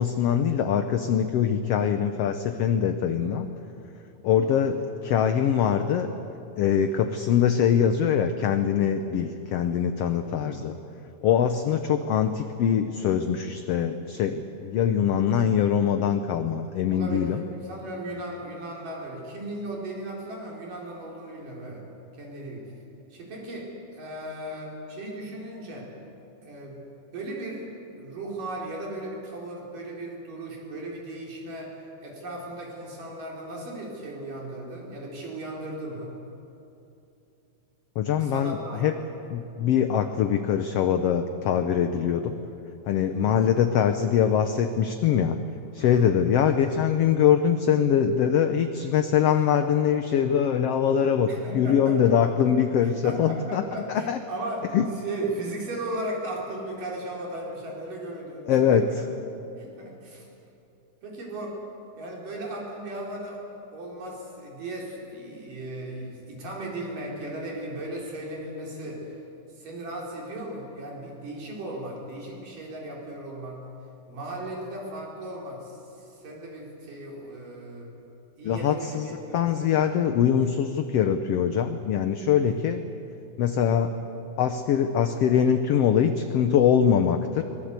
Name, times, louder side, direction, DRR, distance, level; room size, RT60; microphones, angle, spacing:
voice 1, 0.0-3.5 4.2-6.1 6.6-10.7 11.2-17.4 38.0-38.9 39.3-42.3 42.9-45.4 45.7-53.6 53.9-54.2 54.7-54.9 58.5-58.9 78.4-79.1 79.3-82.8 83.4-84.0 84.4-87.4, left 8 dB, 70° left, 8 dB, 1.5 m, -23 dB
voice 2, 3.2-3.6 4.4-4.8 10.3-10.7 16.9-21.8 22.1-22.7 23.1-25.9 26.4-26.8 27.1-27.7 27.9-31.7 32.0-36.1 38.2-39.0 41.9-42.0 43.1-43.4 45.8-46.1 51.3-52.4 52.8-59.0 59.6-60.3 61.0-61.6 62.0-63.4 63.7-69.1 69.6-73.6 74.1-77.9 78.4-79.8 82.4-82.6, right 1 dB, 80° right, -2 dB, 5.8 m, -36 dB
23.5 x 19.5 x 8.2 m, 2.8 s
omnidirectional pair, 3.7 m